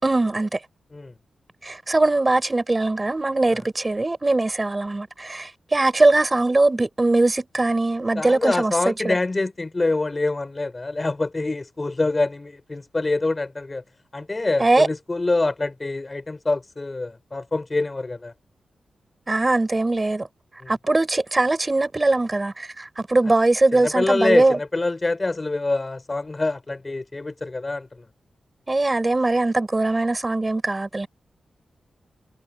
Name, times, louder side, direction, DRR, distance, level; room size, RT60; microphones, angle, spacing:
voice 1, 0.0-0.6 1.6-9.2 14.6-14.9 19.3-20.3 20.7-24.6 28.7-31.1, right 2 dB, 20° right, 4.6 m, -21 dB
voice 2, 8.2-13.8 14.1-18.3 20.6-20.7 23.7-28.0, left 2 dB, 20° left, 5.2 m, -25 dB
wide cardioid pair, 175°, 0 cm